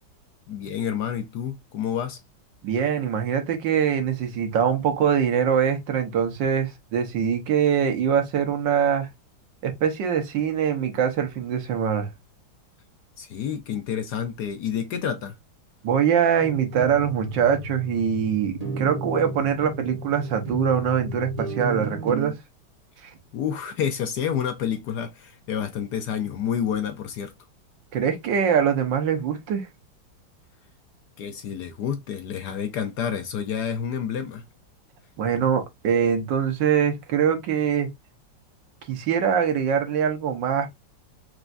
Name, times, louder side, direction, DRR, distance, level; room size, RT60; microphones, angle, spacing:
voice 1, 0.5-2.2 13.2-15.3 23.3-27.3 31.2-34.4, left 8 dB, 65° left, 1.1 m, -29 dB
voice 2, 2.6-9.1 9.6-12.1 15.8-22.3 23.0-23.1 27.9-29.7 35.2-37.9 38.9-40.7, right 8 dB, 70° right, 1.6 m, -23 dB
sound 1, 16.4-22.3, right 2 dB, 35° right, 0.6 m, -33 dB
4.6 x 3.0 x 2.6 m
omnidirectional pair, 2.1 m